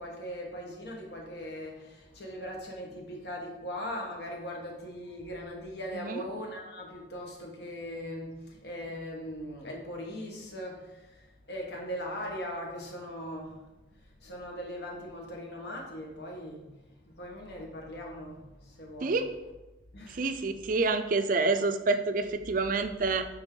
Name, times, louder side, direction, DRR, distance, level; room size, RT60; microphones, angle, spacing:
voice 1, 0.0-13.7 13.9-16.8 17.0-19.2 19.9-20.4, equal, 60° left, 0 dB, 1.3 m, -40 dB
voice 2, 20.1-23.3, right 3 dB, 45° right, 9 dB, 0.4 m, -28 dB
8.9 x 3.5 x 3.8 m, 1.1 s
head